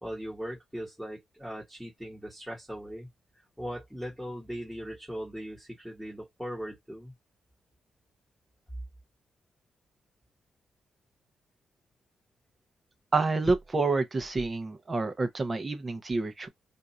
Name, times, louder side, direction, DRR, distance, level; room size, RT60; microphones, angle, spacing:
voice 1, 0.0-3.1 3.6-7.1, equal, ahead, 1.3 m, -39 dB
voice 2, 13.1-16.5, right 3 dB, 25° right, 0.7 m, -28 dB
2.6 x 2.4 x 4.1 m
wide cardioid pair, 155°, 0 cm